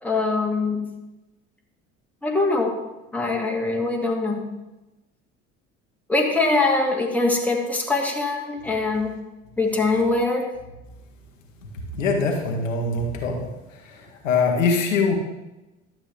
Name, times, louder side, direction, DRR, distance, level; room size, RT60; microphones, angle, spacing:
voice 1, 0.0-0.9 2.2-2.8 3.1-4.4 6.1-9.1 9.6-10.5, left 3 dB, 5° left, 0 dB, 1.9 m, -23 dB
voice 2, 11.9-13.5 13.8-15.1, left 4 dB, 85° left, 1 dB, 1.4 m, -23 dB
12.0 x 7.7 x 3.3 m, 1.0 s
hypercardioid pair, 65°, 37 cm